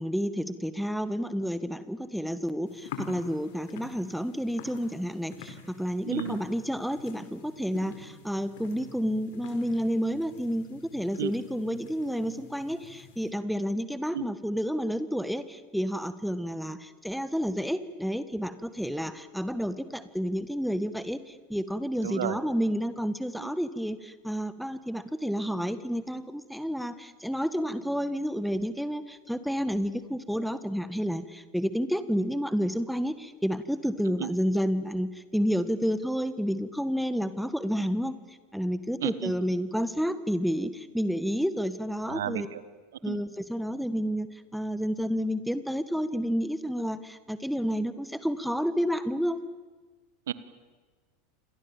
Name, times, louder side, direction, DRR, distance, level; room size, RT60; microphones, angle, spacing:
voice 1, 0.0-38.1 38.5-42.5 43.0-49.4, equal, ahead, 12 dB, 1.6 m, -30 dB
sound 1, 2.7-13.3, left 4 dB, 65° left, 4.4 m, -46 dB
voice 2, 6.0-6.4 11.2-11.3 14.1-14.3 22.0-22.4 23.4-23.5 34.2-34.3 39.0-39.3 42.1-42.6 43.1-43.2 50.3-50.4, right 11 dB, 70° right, 15 dB, 1.4 m, -33 dB
29.5 x 26.0 x 7.2 m, 1.4 s
figure-of-eight pair, 80°, 0 cm